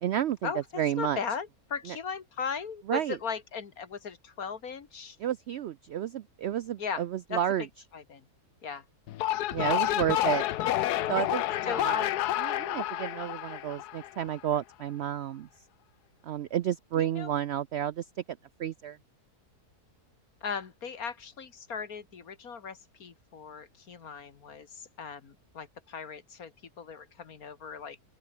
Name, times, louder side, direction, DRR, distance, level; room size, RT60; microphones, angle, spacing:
voice 1, 0.0-0.5 0.8-1.2 1.9-2.0 2.9-3.2 5.2-7.7 9.5-10.5 11.1-12.0 12.4-15.5 16.2-18.1 18.6-19.0, right 10 dB, 70° right, 0.6 m, -31 dB
voice 2, 1.0-5.2 6.8-7.0 7.3-7.4 7.9-8.2 8.6-8.8 9.6-9.8 10.2-10.4 11.6-12.1 17.0-17.3 20.4-28.0, left 6 dB, 65° left, 2.2 m, -38 dB
sound 1, 9.1-14.4, left 13 dB, 85° left, 1.3 m, -29 dB
open air
omnidirectional pair, 1.7 m